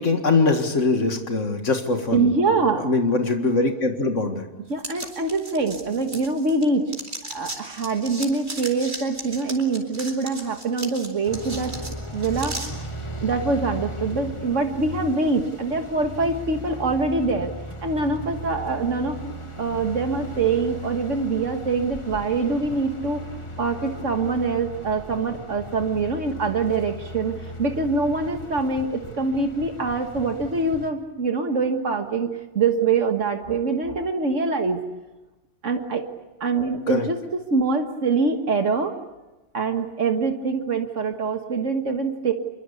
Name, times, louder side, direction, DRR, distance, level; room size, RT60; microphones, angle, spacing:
voice 1, 0.0-2.3 2.8-4.5 36.9-37.1, left 3 dB, 85° left, 5 dB, 2.3 m, -22 dB
voice 2, 2.1-2.9 4.7-6.9 7.3-11.7 12.1-12.6 13.2-17.5 17.8-19.3 19.6-23.2 23.6-27.3 27.6-32.3 32.5-34.8 35.6-36.0 36.4-39.0 39.5-42.3, right 4 dB, 80° right, 4 dB, 2.0 m, -24 dB
sound 1, 4.8-6.6 6.9-12.7, right 2 dB, 60° right, 4.5 m, -36 dB
sound 2, 11.2-30.9, equal, 25° left, 1.7 m, -37 dB
27.5 x 23.0 x 8.4 m, 1.1 s
omnidirectional pair, 1.3 m